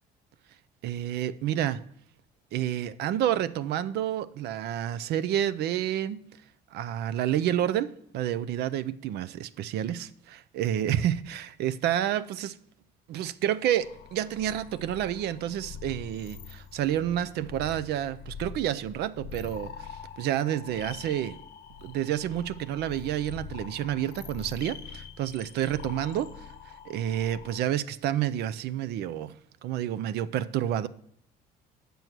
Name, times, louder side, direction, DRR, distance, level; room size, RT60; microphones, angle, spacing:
voice 1, 0.8-1.8 2.5-6.3 6.7-12.6 13.1-19.9 20.2-21.4 21.8-26.4 26.9-29.3 29.6-30.9, right 11 dB, 75° right, 0.5 m, -29 dB
sound 1, 13.8-27.6, left 7 dB, 80° left, 0.7 m, -44 dB
9.2 x 6.8 x 6.0 m
cardioid pair, 110°, 17 cm